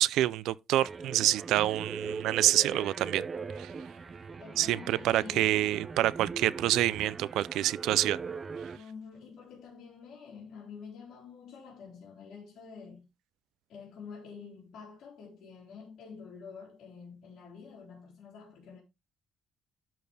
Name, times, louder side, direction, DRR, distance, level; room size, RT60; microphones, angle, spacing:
voice 1, 0.0-3.2 3.6-3.7 4.6-8.2, right 14 dB, 80° right, 0.3 m, -27 dB
sound 1, 0.8-8.8, right 5 dB, 25° right, 0.5 m, -40 dB
voice 2, 4.4-5.7 8.7-13.1 13.7-18.8, left 5 dB, 55° left, 3.3 m, -48 dB
11.5 x 4.6 x 3.3 m
cardioid pair, 155°, 0 cm